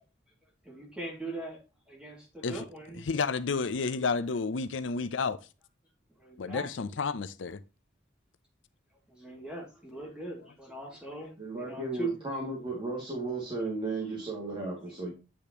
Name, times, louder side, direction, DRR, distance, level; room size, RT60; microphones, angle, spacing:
voice 1, 0.6-1.6 1.9-3.0 6.2-6.9 9.1-12.2, right 2 dB, 5° right, 2.2 m, -40 dB
voice 2, 3.1-5.4 6.4-7.6, left 4 dB, 75° left, 0.6 m, -31 dB
voice 3, 11.4-15.1, right 2 dB, 25° right, 2.1 m, -35 dB
8.7 x 5.0 x 2.9 m
head